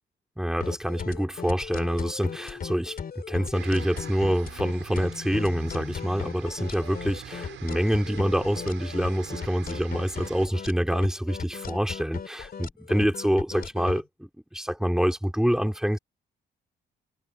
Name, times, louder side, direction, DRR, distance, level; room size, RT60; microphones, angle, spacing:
voice 1, 0.4-3.0 3.3-16.0, equal, 5° right, 3.6 m, -26 dB
sound 1, 0.6-14.0, left 7 dB, 50° left, 3.5 m, -37 dB
sound 2, 3.5-10.5, right 11 dB, 75° right, 6.4 m, -44 dB
cardioid pair, 90°, 20 cm